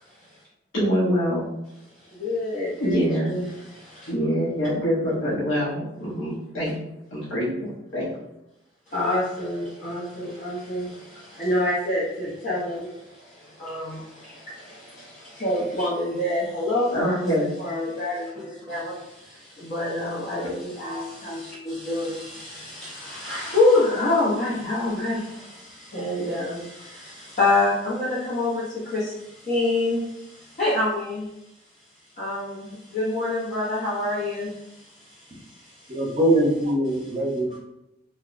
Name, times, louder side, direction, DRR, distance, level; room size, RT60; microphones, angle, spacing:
voice 1, 0.7-1.4 2.8-3.3 4.1-6.7 7.1-8.1 16.9-17.5, equal, 80° left, -8 dB, 0.7 m, -24 dB
voice 2, 2.1-2.9 3.2-4.1 8.9-17.2 17.6-31.3 32.2-36.0, left 2 dB, 40° left, -8 dB, 0.5 m, -27 dB
voice 3, 35.9-37.6, right 1 dB, 35° right, -2 dB, 0.6 m, -22 dB
2.8 x 2.1 x 2.4 m, 0.88 s
head